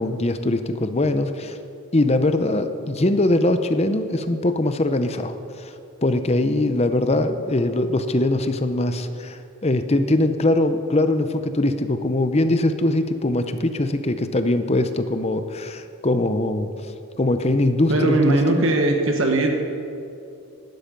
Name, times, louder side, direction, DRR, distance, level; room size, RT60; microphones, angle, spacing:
voice 1, 0.0-1.6 1.9-5.7 6.0-16.7 17.2-18.6, left 2 dB, 30° left, 9 dB, 0.7 m, -22 dB
voice 2, 17.9-19.5, right 2 dB, 60° right, 3 dB, 1.4 m, -19 dB
17.5 x 12.0 x 5.3 m, 2.6 s
head